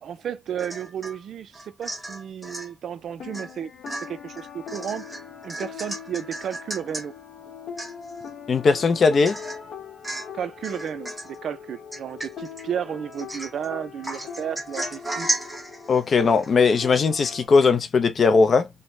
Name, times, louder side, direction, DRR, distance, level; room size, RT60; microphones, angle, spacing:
voice 1, 0.0-3.7 4.0-5.0 5.4-7.1 10.3-15.3, right 9 dB, 60° right, 0.4 m, -33 dB
Domestic sounds home sounds / Chink clink / Drip, 0.6-1.2 1.5-2.7 3.3-3.5 3.9-7.1 7.5-7.6 7.8-8.3 8.7-8.8 9.3-9.7 10.0-10.4 10.6-11.4 11.9-12.6 13.1-13.7 14.0-17.3 17.6-17.7, right 1 dB, 5° right, 0.9 m, -34 dB
sound 1, 3.1-17.5, left 7 dB, 65° left, 0.9 m, -41 dB
voice 2, 8.5-9.4 15.9-18.7, left 4 dB, 45° left, 0.5 m, -19 dB
3.1 x 2.1 x 2.6 m
cardioid pair, 130°, 0 cm